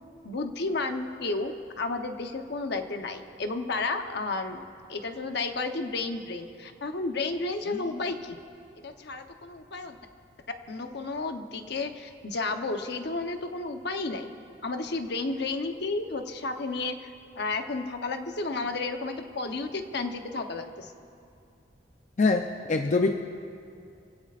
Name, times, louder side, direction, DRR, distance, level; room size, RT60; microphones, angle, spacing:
voice 1, 0.2-4.6 4.9-8.4 8.8-10.0 10.7-14.3 14.6-17.1 17.4-20.9, left 3 dB, 65° left, 6 dB, 0.9 m, -32 dB
voice 2, 22.2-23.1, left 3 dB, 40° left, 4 dB, 0.5 m, -24 dB
26.0 x 16.5 x 2.5 m, 2.5 s
head